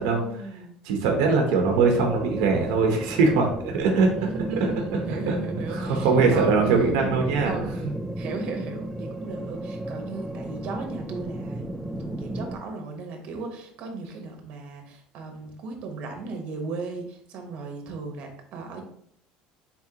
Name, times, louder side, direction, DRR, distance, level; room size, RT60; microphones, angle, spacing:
voice 1, 0.0-0.7 3.9-7.2 7.4-7.8 8.2-18.8, right 3 dB, 55° right, 3 dB, 1.0 m, -36 dB
voice 2, 0.8-5.0 5.3-5.4 5.7-7.6, right 4 dB, 85° right, 2 dB, 0.7 m, -22 dB
sound 1, 1.6-12.6, right 1 dB, 5° right, 0.3 m, -33 dB
4.1 x 3.6 x 2.8 m, 0.66 s
cardioid pair, 140°, 3 cm